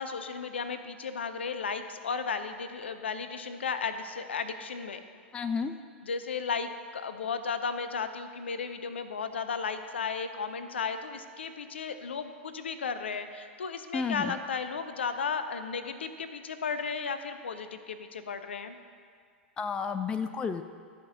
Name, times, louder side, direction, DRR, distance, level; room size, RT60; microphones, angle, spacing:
voice 1, 0.0-5.0 6.0-18.8, left 5 dB, 65° left, 10 dB, 0.6 m, -34 dB
voice 2, 5.3-5.7 13.9-14.4 19.6-20.6, left 5 dB, 15° left, 9 dB, 0.4 m, -31 dB
12.5 x 5.2 x 6.2 m, 2.1 s
figure-of-eight pair, 95°, 6 cm